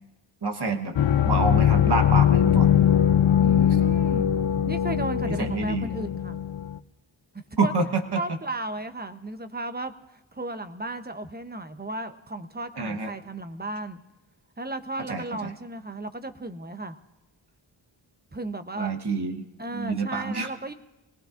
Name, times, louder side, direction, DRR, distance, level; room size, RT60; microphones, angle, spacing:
voice 1, 0.4-0.9 1.2-2.7 5.2-5.9 7.6-8.2 12.8-13.1 15.1-15.5 18.7-19.4 19.7-20.5, right 3 dB, 55° right, 4 dB, 1.2 m, -27 dB
sound 1, 0.9-6.8, left 9 dB, 70° left, 0.6 m, -21 dB
voice 2, 3.4-4.3 4.7-6.4 7.6-7.7 8.1-14.0 14.6-17.0 18.3-18.9 19.6-20.7, right 2 dB, 20° right, 9 dB, 0.8 m, -35 dB
26.0 x 18.5 x 2.5 m, 0.99 s
wide cardioid pair, 50°, 48 cm